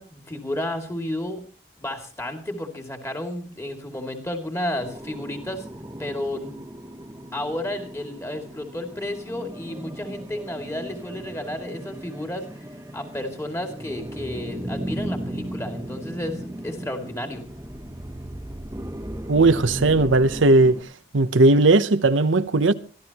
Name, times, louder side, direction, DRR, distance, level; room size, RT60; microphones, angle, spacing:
voice 1, 0.0-1.4 1.8-5.7 6.0-6.6 7.3-12.7 12.9-17.4, left 1 dB, 15° left, 2.4 m, -32 dB
sound 1, 4.8-20.8, right 1 dB, 15° right, 0.8 m, -36 dB
voice 2, 19.3-20.8 21.1-22.7, right 2 dB, 80° right, 0.8 m, -17 dB
24.5 x 14.0 x 3.0 m
head